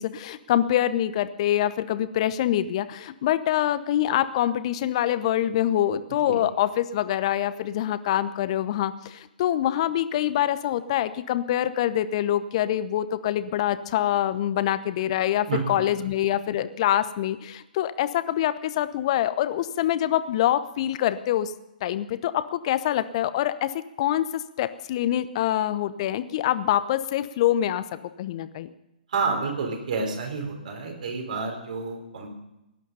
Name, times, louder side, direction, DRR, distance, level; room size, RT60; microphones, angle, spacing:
voice 1, 0.0-21.5 21.8-27.8 28.2-28.7, left 12 dB, 40° left, 14 dB, 0.9 m, -25 dB
voice 2, 15.5-15.9 29.1-32.3, right 4 dB, 55° right, 3 dB, 4.4 m, -29 dB
17.5 x 12.0 x 5.6 m, 0.91 s
figure-of-eight pair, 120°, 5 cm